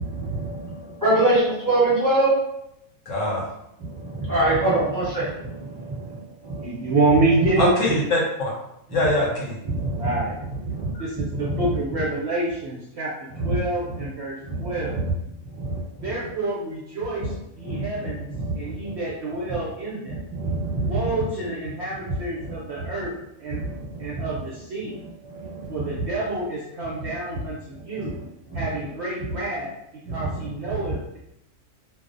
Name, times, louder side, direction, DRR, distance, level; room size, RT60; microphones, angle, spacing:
voice 1, 0.0-2.3 3.8-6.9 8.9-9.1 9.6-10.1 10.6-10.9 11.3-11.8 13.3-13.6 13.9-14.0 14.4-15.1 15.4-16.0 17.2-17.3 17.6-18.9 19.5-19.6 20.1-21.1 22.1-22.2 23.5-24.3 25.3-26.1 27.0-27.4 27.7-28.2 28.5-28.6 30.0-30.5 30.8-31.0, right 2 dB, 15° right, -10 dB, 0.9 m, -26 dB
voice 2, 3.1-3.5 7.6-8.5 8.9-9.6 10.9-11.0, left 1 dB, 65° left, -4 dB, 0.9 m, -23 dB
voice 3, 6.6-7.7 10.0-10.4 11.0-15.0 16.0-18.3 18.5-20.2 20.8-23.1 23.4-23.6 24.0-25.0 25.7-28.2 28.5-29.7 30.1-31.2, right 2 dB, 65° right, -6 dB, 0.7 m, -27 dB
2.5 x 2.0 x 2.4 m, 0.81 s
omnidirectional pair, 1.5 m